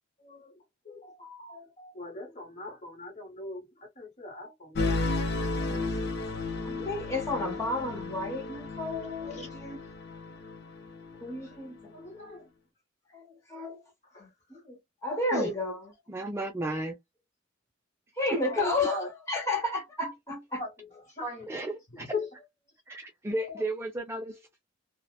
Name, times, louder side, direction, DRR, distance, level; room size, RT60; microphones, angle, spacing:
voice 1, 0.8-5.1 9.4-9.5 11.9-12.5 14.1-14.2 18.4-19.1 20.6-20.7 21.2-21.5 22.0-22.3 23.4-23.6, left 2 dB, 35° left, 1.1 m, -39 dB
sound 1, 4.7-11.6, left 3 dB, 60° left, 0.5 m, -33 dB
voice 2, 5.4-6.0 6.6-9.8 11.2-11.9 13.1-13.2 13.5-13.8 14.2-15.9 18.2-20.6, left 2 dB, 15° left, 1.1 m, -32 dB
voice 3, 16.1-17.0 18.3-18.4 21.5-22.2 22.9-24.6, right 1 dB, 15° right, 0.3 m, -34 dB
2.7 x 2.0 x 2.2 m
head